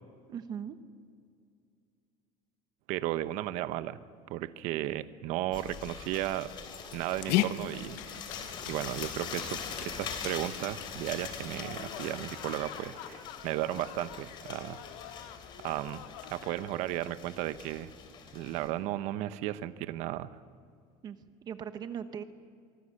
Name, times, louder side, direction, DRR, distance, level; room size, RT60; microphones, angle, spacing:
voice 1, 0.3-0.8 21.0-22.2, right 8 dB, 30° right, 10 dB, 0.9 m, -39 dB
voice 2, 2.9-4.0 4.3-6.5 6.9-8.3 8.7-14.8 15.2-15.3 15.6-16.0 16.3-17.9 18.3-20.4, right 14 dB, 55° right, 13 dB, 0.9 m, -35 dB
sound 1, 5.5-18.7, left 6 dB, 35° left, 3.1 m, -43 dB
Dog, 6.9-12.2, left 13 dB, 65° left, 0.8 m, -37 dB
sound 2, 11.6-16.7, left 12 dB, 80° left, 1.6 m, -47 dB
25.0 x 23.0 x 6.5 m, 2.2 s
cardioid pair, 175°, 14 cm